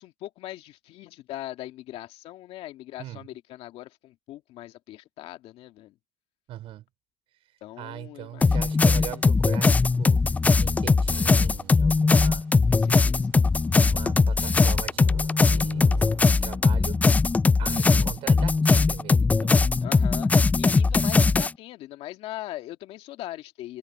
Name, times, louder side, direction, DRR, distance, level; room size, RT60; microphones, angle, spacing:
voice 1, 0.0-5.9 7.6-8.6 9.0-9.2 12.7-13.3 17.6-18.1 19.8-23.8, left 15 dB, 65° left, 2.2 m, -40 dB
voice 2, 6.5-6.9 7.8-10.2 10.6-12.4 13.8-15.2 15.4-17.1 17.6-19.7, right 14 dB, 60° right, 4.6 m, -40 dB
sound 1, 8.4-21.5, left 4 dB, 15° left, 0.3 m, -20 dB
sound 2, 8.6-16.3, right 28 dB, 90° right, 3.4 m, -50 dB
cardioid pair, 110°, 11 cm